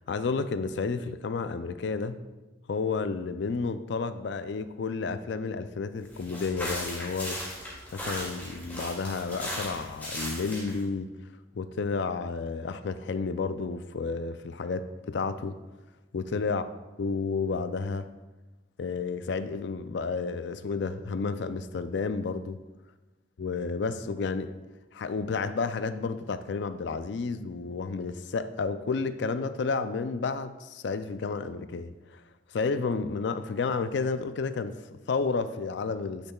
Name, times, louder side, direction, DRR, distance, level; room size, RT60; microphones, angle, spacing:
voice 1, 0.0-2.2 2.7-7.4 7.9-11.1 11.5-15.6 16.1-16.6 17.0-18.1 18.8-22.6 23.4-24.5 24.9-32.2 32.5-36.3, left 4 dB, 60° left, 11 dB, 0.4 m, -31 dB
sound 1, 6.1-10.8, left 1 dB, 10° left, 2.3 m, -37 dB
10.0 x 6.6 x 2.3 m, 1.2 s
head